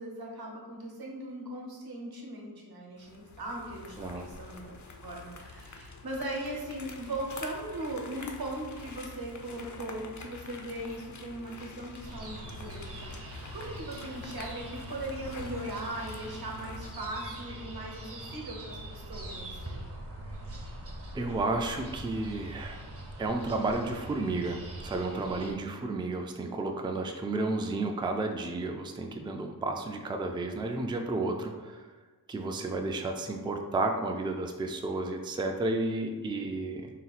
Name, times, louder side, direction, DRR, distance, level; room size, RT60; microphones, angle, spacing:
voice 1, 0.0-4.7 5.0-19.9, right 1 dB, 65° right, -1 dB, 1.0 m, -39 dB
sound 1, 3.0-17.3, left 3 dB, 45° left, 0.5 m, -47 dB
sound 2, 12.0-25.5, right 1 dB, 35° right, 0.7 m, -43 dB
voice 2, 21.1-22.9 23.2-31.9 32.3-36.9, right 2 dB, 15° right, 4 dB, 0.3 m, -32 dB
4.1 x 2.4 x 4.0 m, 1.4 s
wide cardioid pair, 105°, 40 cm